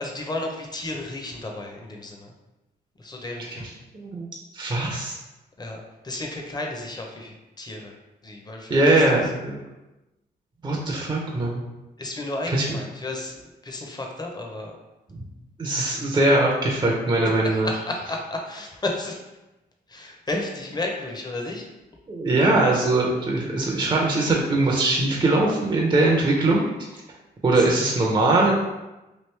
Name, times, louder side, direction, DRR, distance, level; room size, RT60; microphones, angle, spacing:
voice 1, 0.0-2.3 3.0-3.7 5.6-7.9 8.2-9.3 12.0-13.3 13.6-14.8 17.4-19.2 19.9-21.7 27.5-27.7, left 2 dB, 25° left, 1 dB, 0.7 m, -33 dB
voice 2, 3.9-4.3 4.5-5.2 8.7-9.6 10.6-11.6 12.5-12.6 15.6-17.7 22.1-26.7 27.4-28.5, right 2 dB, 25° right, -2 dB, 0.6 m, -21 dB
3.1 x 2.5 x 3.2 m, 1.0 s
cardioid pair, 75°, 18 cm